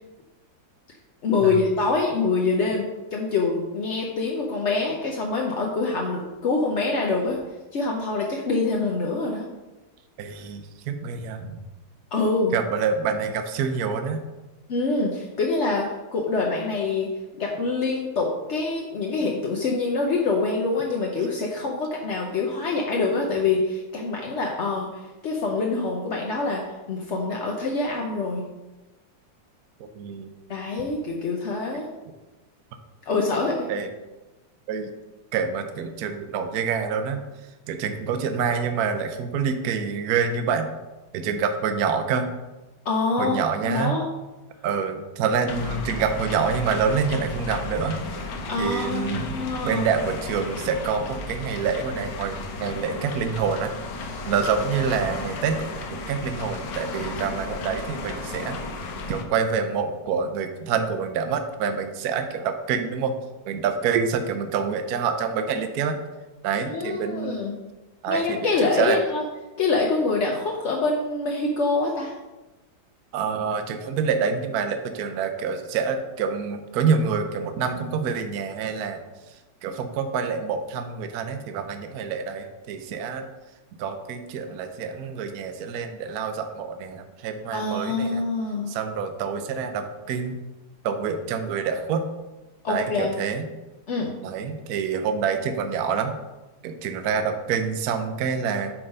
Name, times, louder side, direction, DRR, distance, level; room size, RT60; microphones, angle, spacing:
voice 1, 1.2-7.4 7.7-9.5 12.1-12.5 14.7-17.1 17.4-28.5 30.5-31.9 33.1-33.7 42.8-44.0 48.5-49.9 66.7-67.5 68.1-69.2 69.6-72.1 87.5-88.7 92.6-93.2 93.9-94.1, left 3 dB, 55° left, -1 dB, 0.8 m, -25 dB
voice 2, 10.2-11.6 12.5-14.2 29.8-30.3 33.7-33.9 34.7-34.9 35.3-37.2 37.7-40.7 41.1-42.3 43.2-44.0 44.6-48.0 48.6-49.3 49.6-53.7 54.3-58.6 59.1-63.1 63.4-66.0 66.4-67.4 68.0-69.0 73.1-79.0 79.6-83.3 83.8-88.2 88.7-90.4 90.8-92.0 92.7-93.5 94.2-96.2 96.6-98.7, right 6 dB, 65° right, 7 dB, 1.0 m, -27 dB
sound 1, 45.5-59.2, left 3 dB, 75° left, 1.5 m, -34 dB
8.7 x 3.6 x 5.4 m, 1.1 s
omnidirectional pair, 2.1 m